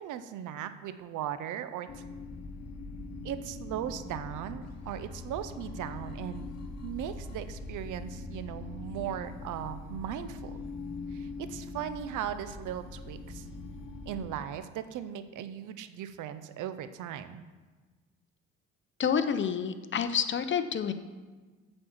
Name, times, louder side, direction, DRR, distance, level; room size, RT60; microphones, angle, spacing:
voice 1, 0.0-2.1 3.2-6.5 6.8-10.6 11.1-13.5 14.1-17.4, right 10 dB, 80° right, 12 dB, 0.6 m, -38 dB
sound 1, 1.9-14.3, left 3 dB, 55° left, 1.2 m, -42 dB
voice 2, 19.0-20.9, left 7 dB, 40° left, 10 dB, 0.7 m, -28 dB
8.7 x 4.4 x 7.4 m, 1.3 s
cardioid pair, 90°, 30 cm